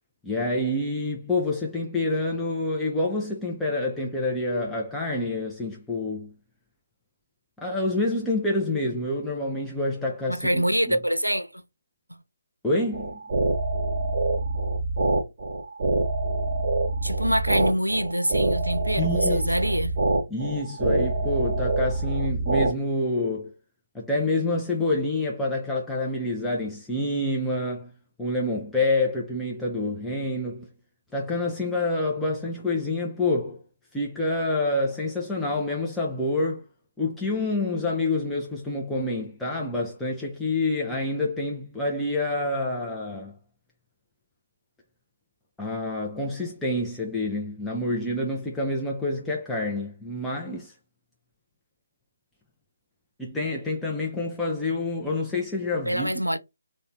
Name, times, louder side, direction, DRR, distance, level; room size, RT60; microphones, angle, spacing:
voice 1, 0.2-6.3 7.6-11.0 12.6-13.2 19.0-19.5 20.3-23.5 23.9-27.9 28.2-30.7 31.1-33.6 33.9-36.6 37.0-43.3 45.6-50.7 53.2-56.1, left 2 dB, 5° left, 0.4 m, -27 dB
voice 2, 10.3-11.6 17.0-20.0 55.9-56.4, equal, 85° right, 0.4 m, -25 dB
sound 1, 12.9-22.7, right 2 dB, 30° right, 1.0 m, -25 dB
2.4 x 2.0 x 3.1 m
figure-of-eight pair, 145°, 0 cm